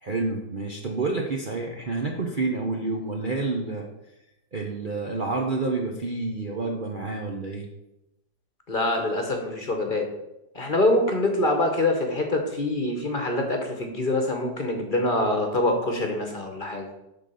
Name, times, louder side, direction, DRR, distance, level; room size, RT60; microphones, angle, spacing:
voice 1, 0.0-3.9 4.5-7.7, right 3 dB, 85° right, 0 dB, 0.4 m, -29 dB
voice 2, 8.7-10.1 10.5-16.9, left 1 dB, 35° left, 3 dB, 0.9 m, -25 dB
8.0 x 3.9 x 6.8 m, 0.91 s
omnidirectional pair, 2.1 m